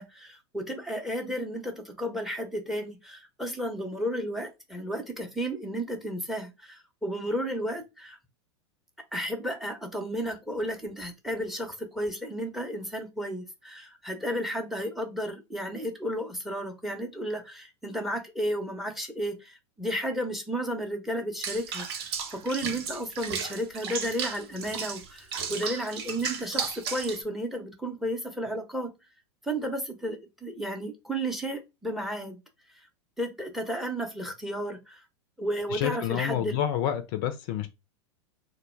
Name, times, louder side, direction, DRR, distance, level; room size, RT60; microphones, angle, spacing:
voice 1, 0.0-8.2 9.1-28.9 29.4-32.4 33.2-35.0 35.4-36.6, equal, ahead, 0.7 m, -33 dB
Water / Bathtub (filling or washing), 21.4-27.2, right 6 dB, 60° right, 0.7 m, -34 dB
voice 2, 35.7-37.7, left 10 dB, 50° left, 0.4 m, -28 dB
2.2 x 2.1 x 3.2 m
hypercardioid pair, 90°, 15 cm